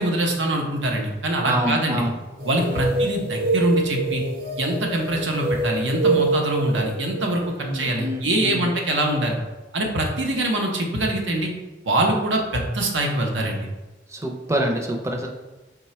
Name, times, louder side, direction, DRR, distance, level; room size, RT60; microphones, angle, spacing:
voice 1, 0.0-2.0 2.4-4.2 4.6-9.4 9.7-11.5 11.8-13.7, right 1 dB, 90° right, 1 dB, 0.8 m, -23 dB
voice 2, 1.4-2.2 2.7-2.9 7.6-8.7 14.1-15.3, right 1 dB, 15° right, 2 dB, 0.5 m, -26 dB
sound 1, 2.4-8.8, right 3 dB, 55° right, 0.9 m, -26 dB
4.8 x 2.2 x 4.2 m, 1.1 s
head